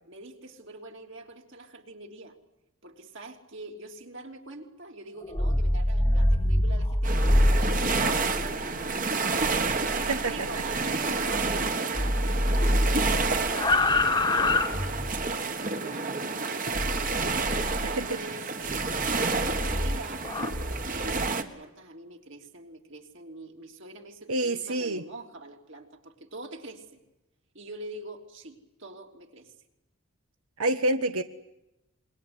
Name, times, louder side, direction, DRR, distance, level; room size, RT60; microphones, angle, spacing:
voice 1, 0.1-2.4 2.8-9.0 9.9-16.8 17.2-18.8 19.3-20.3 20.9-27.0 27.5-29.5, right 2 dB, 55° right, 3 dB, 3.3 m, -44 dB
sound 1, 5.2-11.7 11.9-15.3 16.7-18.0 18.7-21.3, left 1 dB, 20° left, 1.3 m, -27 dB
sound 2, 7.0-21.4, right 4 dB, 40° right, 1.6 m, -30 dB
voice 2, 24.3-25.0 30.6-31.2, right 2 dB, 80° right, 9 dB, 1.1 m, -27 dB
27.0 x 22.5 x 9.9 m, 0.94 s
head